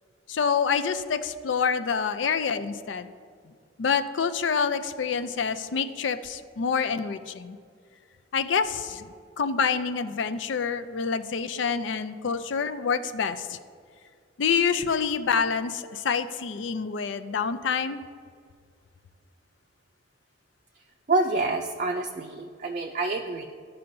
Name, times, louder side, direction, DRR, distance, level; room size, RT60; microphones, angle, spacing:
voice 1, 0.3-3.1 3.8-7.6 8.3-13.6 14.4-18.0, left 6 dB, 70° left, 10 dB, 0.4 m, -27 dB
voice 2, 21.1-23.4, right 2 dB, 40° right, 1 dB, 0.5 m, -27 dB
14.5 x 5.6 x 2.6 m, 2.2 s
head